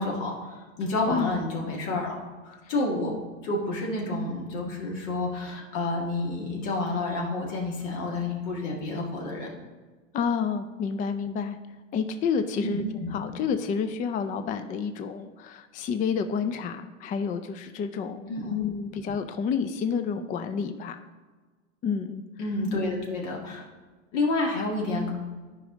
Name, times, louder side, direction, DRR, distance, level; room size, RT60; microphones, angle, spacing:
voice 1, 0.0-2.2 2.4-3.1 3.4-9.5 12.6-13.1 18.3-18.6 22.4-23.7 24.1-25.1, left 2 dB, 70° left, -2 dB, 1.9 m, -29 dB
voice 2, 1.1-1.4 10.1-11.6 11.9-12.8 13.1-21.0 21.8-22.2, left 6 dB, 20° left, 9 dB, 0.3 m, -29 dB
10.5 x 5.1 x 3.8 m, 1.3 s
hypercardioid pair, 105°, 38 cm